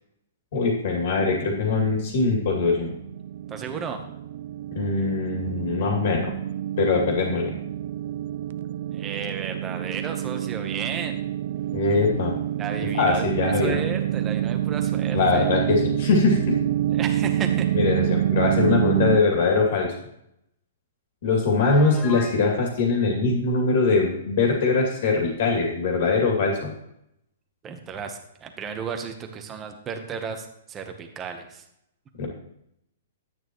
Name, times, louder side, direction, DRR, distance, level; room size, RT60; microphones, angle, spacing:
voice 1, 0.5-2.9 4.7-6.3 6.8-7.5 11.7-12.3 12.9-13.8 15.1-16.6 17.7-19.9 21.2-26.6 32.2-32.3, left 3 dB, 55° left, 0 dB, 2.5 m, -22 dB
sound 1, 1.6-19.2, right 11 dB, 50° right, 0.4 m, -27 dB
voice 2, 3.5-4.0 8.9-11.2 12.6-15.5 16.9-17.7 27.6-31.6, right 6 dB, 15° right, 5 dB, 1.0 m, -34 dB
Piano, 21.6-22.4, left 3 dB, 10° left, 1.5 m, -36 dB
10.5 x 9.2 x 3.1 m, 0.79 s
hypercardioid pair, 160°, 0 cm